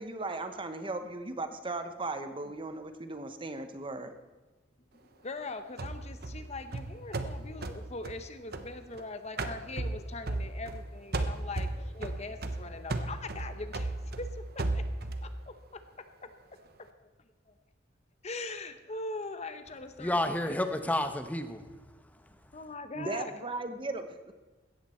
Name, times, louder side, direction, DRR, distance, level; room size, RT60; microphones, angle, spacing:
voice 1, 0.0-4.1 22.9-24.3, right 2 dB, 30° right, 1.0 m, -37 dB
voice 2, 4.9-14.9 15.2-15.8 16.2-16.9 17.5-17.6 18.2-21.0 22.5-23.5, left 3 dB, 35° left, 0.9 m, -42 dB
sound 1, 5.8-9.0 9.4-10.9 11.1-15.3, right 2 dB, 55° right, 1.1 m, -35 dB
voice 3, 20.0-22.4, left 1 dB, 10° left, 1.0 m, -32 dB
17.0 x 13.5 x 4.4 m
head